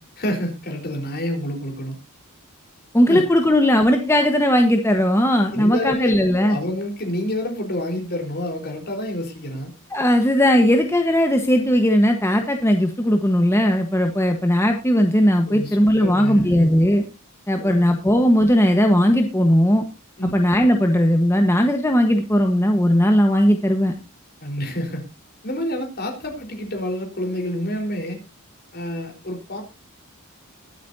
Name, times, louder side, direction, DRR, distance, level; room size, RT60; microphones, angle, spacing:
voice 1, 0.2-2.0 3.1-3.2 5.5-6.1 6.4-9.7 15.4-16.5 17.6-17.9 20.2-20.3 24.4-25.0 25.4-28.2 28.7-29.6, left 1 dB, 45° left, 3 dB, 4.2 m, -28 dB
voice 2, 2.9-6.6 9.9-17.0 17.5-19.8 20.3-23.9, equal, 10° left, 4 dB, 1.3 m, -18 dB
21.5 x 8.5 x 2.8 m, 0.28 s
head